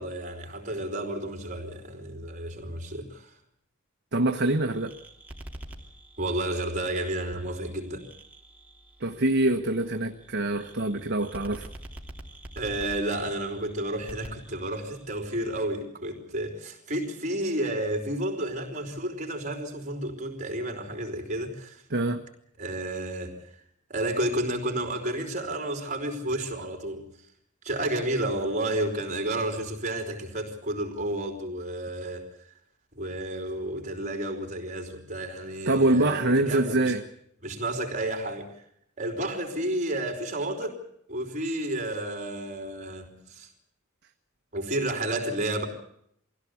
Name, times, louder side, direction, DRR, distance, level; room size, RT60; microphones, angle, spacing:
voice 1, 0.0-3.4 6.2-8.0 12.5-21.8 22.6-23.6 23.9-27.3 27.6-32.5 32.9-36.9 37.4-38.7 39.0-40.8 41.1-43.5 44.5-45.7, right 1 dB, 35° right, 4.6 m, -31 dB
voice 2, 4.1-4.9 9.0-11.7 21.9-22.2 35.7-37.0, right 2 dB, 55° right, 1.2 m, -24 dB
sound 1, 4.3-15.6, right 1 dB, 10° right, 3.0 m, -47 dB
23.5 x 16.5 x 8.4 m
head